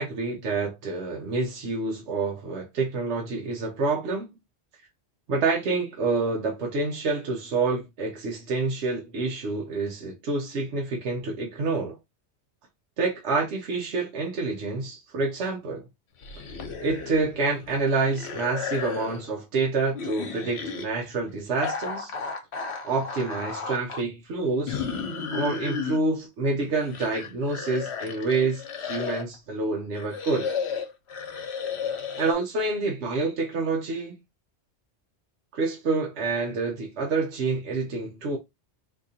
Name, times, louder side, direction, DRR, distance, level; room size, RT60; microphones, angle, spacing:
voice 1, 0.0-4.3 5.3-12.0 13.0-15.8 16.4-16.5 16.8-22.1 22.8-24.8 25.3-30.5 32.2-34.2 35.5-38.4, right 3 dB, 80° right, 1.1 m, -27 dB
sound 1, 16.2-17.4 17.6-19.3 19.9-20.8 21.6-24.0 24.7-26.0 26.6-29.3 29.9-32.3, left 5 dB, 70° left, 1.1 m, -33 dB
3.7 x 2.9 x 2.7 m
omnidirectional pair, 1.1 m